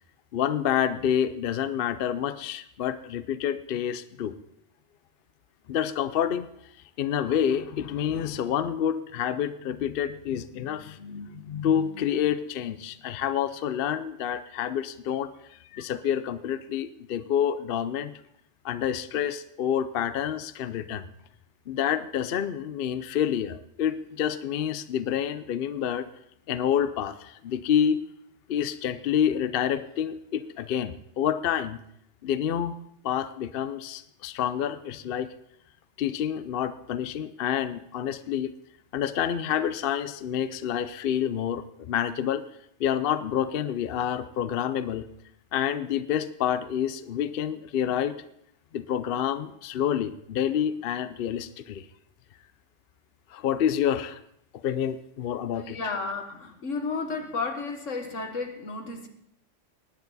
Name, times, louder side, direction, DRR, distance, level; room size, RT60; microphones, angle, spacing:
voice 1, 0.3-4.4 5.7-6.5 7.0-18.1 18.6-21.1 21.7-26.1 26.5-28.0 28.5-31.8 32.2-32.7 33.0-35.3 36.0-38.5 38.9-42.4 42.8-45.1 45.5-48.2 48.7-51.9 53.3-54.2 54.6-55.8, left 9 dB, 60° left, 13 dB, 0.7 m, -28 dB
voice 2, 55.5-59.1, left 4 dB, 80° left, 6 dB, 1.8 m, -32 dB
19.5 x 9.4 x 4.0 m, 0.72 s
omnidirectional pair, 1.3 m